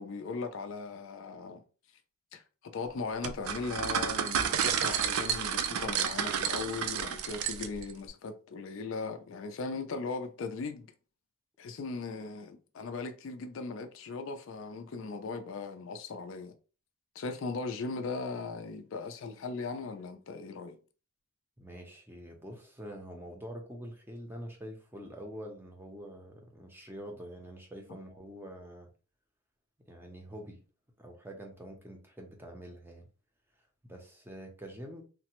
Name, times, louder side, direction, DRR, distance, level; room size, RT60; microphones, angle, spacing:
voice 1, 0.0-1.6 2.3-10.9 11.6-16.5 17.2-20.8, left 4 dB, 60° left, 0.4 m, -38 dB
sound 1, 3.2-7.9, right 8 dB, 80° right, 0.4 m, -31 dB
voice 2, 21.6-28.9 29.9-30.6 31.0-33.1 33.8-35.0, equal, 10° right, 0.5 m, -45 dB
3.2 x 2.1 x 2.9 m
head